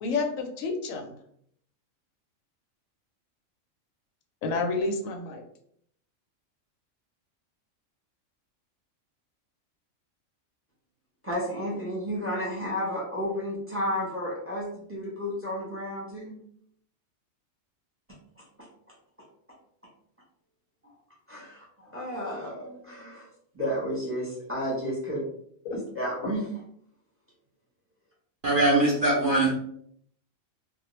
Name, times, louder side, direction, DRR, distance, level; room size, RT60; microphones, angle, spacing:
voice 1, 0.0-1.1 4.4-5.4 25.6-25.8, left 3 dB, 85° left, 3 dB, 1.0 m, -29 dB
voice 2, 11.2-16.4 21.3-23.3 23.5-25.2 25.7-26.5, equal, 10° right, -5 dB, 0.7 m, -32 dB
voice 3, 28.4-29.5, right 2 dB, 55° right, -3 dB, 0.6 m, -22 dB
2.2 x 2.1 x 3.0 m, 0.66 s
omnidirectional pair, 1.4 m